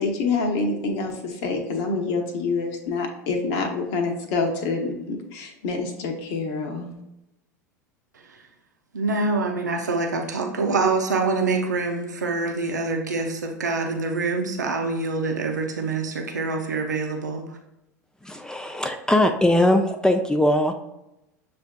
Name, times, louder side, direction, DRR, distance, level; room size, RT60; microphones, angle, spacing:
voice 1, 0.0-6.9, left 4 dB, 55° left, 3 dB, 0.8 m, -26 dB
voice 2, 8.9-17.6, right 3 dB, 80° right, 2 dB, 0.5 m, -25 dB
voice 3, 18.2-20.7, left 1 dB, 10° left, 6 dB, 0.3 m, -20 dB
6.9 x 2.5 x 2.2 m, 0.91 s
figure-of-eight pair, 80°, 9 cm